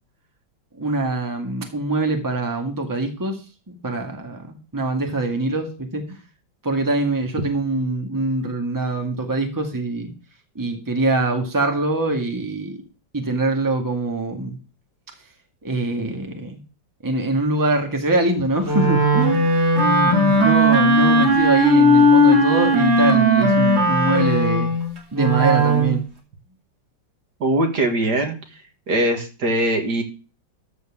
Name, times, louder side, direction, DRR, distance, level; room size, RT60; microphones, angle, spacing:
voice 1, 0.8-3.4 3.7-6.2 6.6-10.1 10.5-12.8 13.1-14.6 15.6-16.6 17.0-24.7 25.1-26.0, right 2 dB, 10° right, 3 dB, 1.8 m, -23 dB
Wind instrument woodwind instrument, 18.6-26.0, equal, 35° right, 2.9 m, -17 dB
voice 2, 27.4-28.4 28.9-30.0, right 1 dB, 60° right, 4 dB, 2.3 m, -21 dB
13.5 x 4.5 x 7.2 m, 0.34 s
omnidirectional pair, 2.0 m